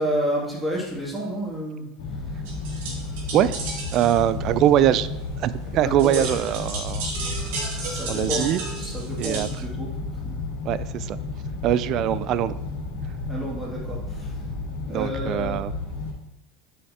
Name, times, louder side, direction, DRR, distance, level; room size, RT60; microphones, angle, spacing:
voice 1, 0.0-2.5 5.8-6.3 7.4-10.4 13.3-14.4 14.9-15.7, equal, 5° right, -5 dB, 2.4 m, -31 dB
sound 1, 2.0-16.1, left 3 dB, 85° left, 2.0 m, -32 dB
sound 2, 2.5-9.6, right 3 dB, 75° right, 2.2 m, -35 dB
voice 2, 3.9-5.1 5.4-7.1 8.1-8.6 9.2-9.5 10.6-11.2 11.6-12.5 14.9-15.7, right 11 dB, 50° right, 16 dB, 0.3 m, -22 dB
8.0 x 5.6 x 2.9 m, 0.97 s
supercardioid pair, 115°, 0 cm